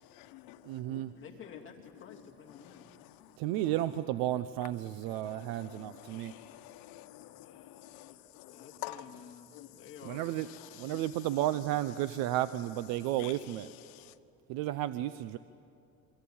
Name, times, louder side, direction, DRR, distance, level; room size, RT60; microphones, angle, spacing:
voice 1, 0.1-1.2 2.1-2.2 2.5-3.4 5.1-9.8 10.4-11.3 13.2-14.1, left 14 dB, 80° left, 9 dB, 1.3 m, -49 dB
voice 2, 0.6-1.1 3.4-6.3 10.1-10.5 10.8-13.7 14.5-15.4, right 14 dB, 80° right, 13 dB, 0.8 m, -33 dB
voice 3, 1.2-2.9 7.4-8.2 8.5-10.4, left 7 dB, 35° left, 0 dB, 2.4 m, -52 dB
27.0 x 24.0 x 8.7 m, 2.5 s
cardioid pair, 170°, 35 cm